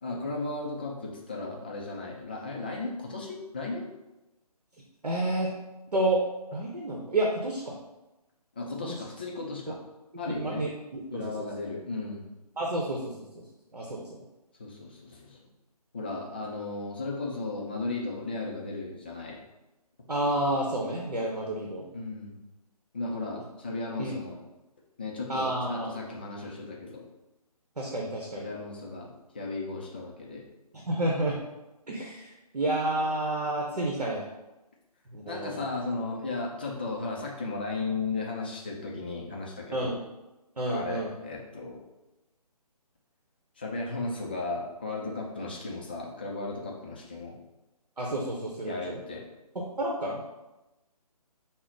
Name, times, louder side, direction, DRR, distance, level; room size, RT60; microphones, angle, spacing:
voice 1, 0.0-3.9 8.6-9.8 10.2-10.7 11.1-12.3 14.6-15.4 15.9-19.4 21.9-22.4 22.9-24.4 25.0-27.0 28.4-30.5 35.3-40.0 40.7-41.8 43.6-47.4 48.6-49.2, left 3 dB, 15° left, -2 dB, 0.3 m, -35 dB
voice 2, 5.0-5.5 5.9-6.2 6.5-7.7 10.1-11.5 12.6-13.4 13.7-14.0 20.1-21.9 24.0-24.1 25.3-25.9 27.8-28.5 30.9-31.4 31.9-34.3 35.1-35.6 39.7-40.0 40.6-41.1 48.0-49.0 49.5-50.3, right 1 dB, 80° right, -1 dB, 0.9 m, -30 dB
5.6 x 2.1 x 3.7 m, 1.0 s
figure-of-eight pair, 145°, 20 cm